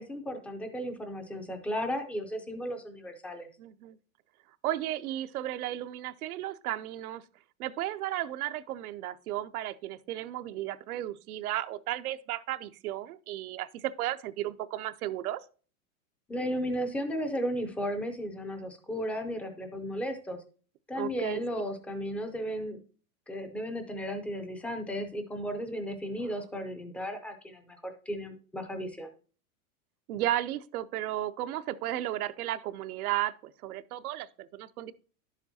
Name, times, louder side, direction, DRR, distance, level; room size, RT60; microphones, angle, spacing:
voice 1, 0.0-3.5 16.3-20.4 20.9-22.8 23.3-29.1, equal, 5° left, 0.4 m, -34 dB
voice 2, 3.6-4.0 4.6-7.2 7.6-15.4 20.9-21.4 26.2-26.3 30.1-34.9, right 13 dB, 75° right, 0.6 m, -34 dB
10.5 x 7.2 x 2.7 m
hypercardioid pair, 135°, 44 cm